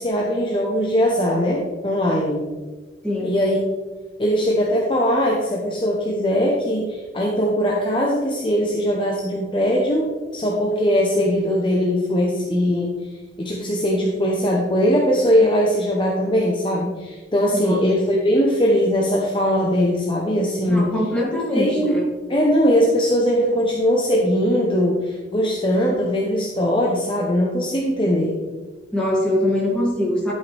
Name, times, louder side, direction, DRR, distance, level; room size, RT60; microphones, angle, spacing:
voice 1, 0.0-2.5 3.2-3.6 4.2-10.1 10.3-12.9 13.4-20.9 21.5-22.0 22.3-28.4, equal, 30° left, -2 dB, 0.9 m, -20 dB
voice 2, 3.0-3.4 17.6-18.1 20.7-22.1 28.9-30.3, left 1 dB, 5° left, -5 dB, 2.3 m, -23 dB
11.0 x 5.6 x 3.4 m, 1.3 s
head